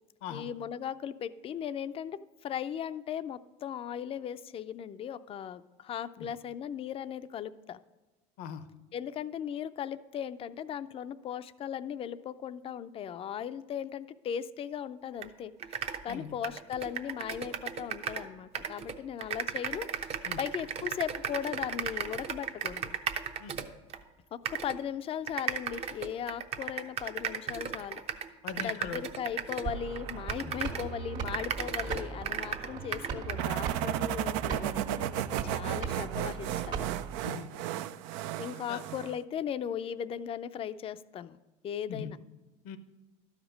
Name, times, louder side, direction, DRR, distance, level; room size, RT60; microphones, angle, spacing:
voice 1, 0.3-7.8 8.9-15.5 16.0-22.9 24.3-28.0 28.6-36.8 38.4-41.4 41.6-42.2, left 9 dB, 35° left, 13 dB, 0.5 m, -38 dB
sound 1, 15.2-15.3 15.6-18.3 18.5-24.0 24.5-24.8 25.3-30.9 31.3-33.5, right 7 dB, 40° right, 0.7 m, -36 dB
voice 2, 28.4-29.0 30.4-30.5 37.2-37.6 38.7-38.8 41.9-42.1 42.6-42.8, left 7 dB, 70° left, 12 dB, 0.8 m, -41 dB
sound 2, 29.6-37.3, right 6 dB, 60° right, 1.6 m, -39 dB
sound 3, 33.4-39.2, right 12 dB, 75° right, 0.4 m, -34 dB
12.0 x 5.1 x 6.3 m, 1.2 s
supercardioid pair, 95°, 16 cm